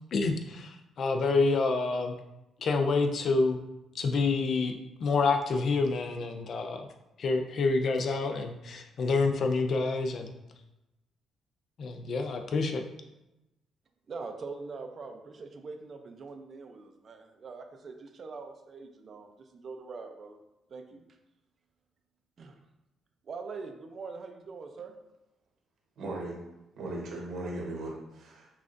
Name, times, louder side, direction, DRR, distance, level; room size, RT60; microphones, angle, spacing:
voice 1, 0.1-2.2 2.6-3.6 3.9-6.8 7.2-10.3 11.8-12.8, left 3 dB, 60° left, 5 dB, 0.5 m, -28 dB
voice 2, 14.1-20.4 20.7-21.0 22.4-22.6 23.2-25.0, right 4 dB, 50° right, 5 dB, 0.5 m, -43 dB
voice 3, 26.0-26.4 26.8-28.5, right 2 dB, 75° right, -1 dB, 1.1 m, -37 dB
5.6 x 2.4 x 2.5 m, 0.94 s
cardioid pair, 90°, 0 cm